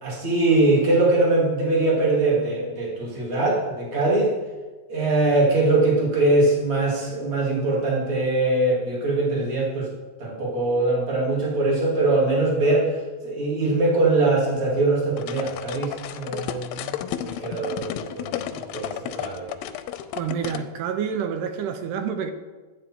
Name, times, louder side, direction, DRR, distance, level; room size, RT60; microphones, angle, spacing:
voice 1, 0.0-4.3 4.9-9.9 10.2-12.9 13.2-17.0 17.2-19.5, right 2 dB, 20° right, -3 dB, 2.2 m, -22 dB
sound 1, 15.2-20.6, left 11 dB, 85° left, 2.3 m, -32 dB
voice 2, 20.2-22.3, right 7 dB, 75° right, 8 dB, 2.2 m, -28 dB
13.0 x 8.8 x 4.4 m, 1.3 s
omnidirectional pair, 4.2 m